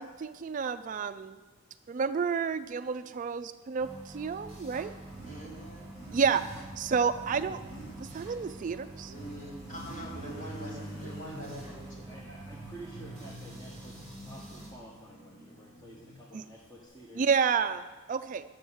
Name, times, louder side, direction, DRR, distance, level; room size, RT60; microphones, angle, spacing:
voice 1, 0.0-1.4 1.9-4.9 6.1-6.4 6.8-7.6 8.0-9.1 16.3-16.4 17.1-18.4, right 6 dB, 40° right, 11 dB, 0.3 m, -30 dB
sound 1, 3.8-14.7, right 1 dB, 15° right, 3.9 m, -47 dB
Motorcycle, 4.1-16.8, right 1 dB, 90° left, 4.5 m, -47 dB
voice 2, 5.3-5.9 9.0-12.3, equal, 40° left, -6 dB, 4.0 m, -44 dB
voice 3, 12.0-17.3, right 1 dB, 20° left, -4 dB, 1.4 m, -50 dB
12.0 x 7.7 x 6.3 m, 1.3 s
head